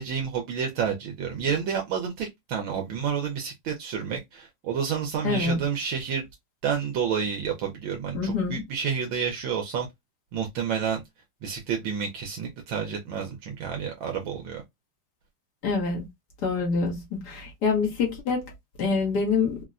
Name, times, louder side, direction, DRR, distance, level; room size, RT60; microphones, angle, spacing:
voice 1, 0.0-6.2 6.6-9.9 10.3-11.0 11.4-14.6, right 7 dB, 75° right, 1.5 m, -29 dB
voice 2, 5.2-5.6 8.1-8.6 15.6-16.0 16.4-18.5 18.8-19.6, left 4 dB, 55° left, 1.5 m, -26 dB
4.1 x 2.1 x 2.4 m
omnidirectional pair, 2.2 m